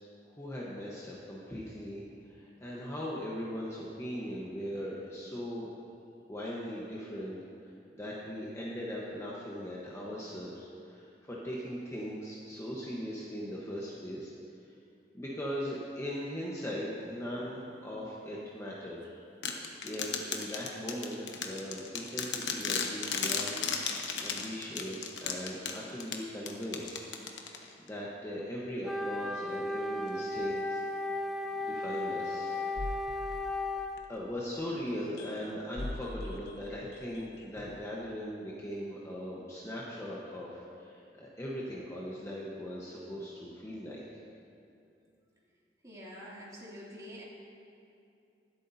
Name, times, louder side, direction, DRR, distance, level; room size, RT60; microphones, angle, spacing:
voice 1, 0.3-5.7 6.3-7.4 7.9-14.3 15.1-19.2 19.8-23.7 24.2-27.0 27.5-30.8 31.5-32.5 34.1-44.0, equal, 15° left, -6 dB, 1.1 m, -39 dB
sound 1, 19.4-27.9, left 6 dB, 90° left, 1.0 m, -36 dB
Wind instrument woodwind instrument, 28.8-34.0, left 2 dB, ahead, 0.4 m, -35 dB
sound 2, 31.6-31.7 32.7-34.4 35.2-35.5 35.8-37.9, left 1 dB, 65° left, 0.8 m, -42 dB
voice 2, 45.8-47.2, equal, 20° right, -6 dB, 2.7 m, -46 dB
24.0 x 8.3 x 2.8 m, 2.6 s
head